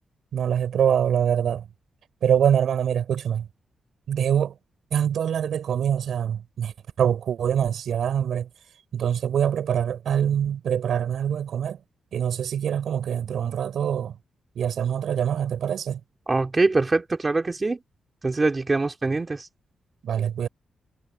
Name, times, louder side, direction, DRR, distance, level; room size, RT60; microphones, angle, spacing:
voice 1, 0.3-1.7 2.2-3.5 4.1-4.5 4.9-8.5 8.9-11.8 12.1-14.2 14.6-16.0 20.0-20.5, right 9 dB, 75° right, 5.8 m, -24 dB
voice 2, 16.3-17.8 18.2-19.5, right 3 dB, 25° right, 2.5 m, -23 dB
cardioid pair, 110°, 0 cm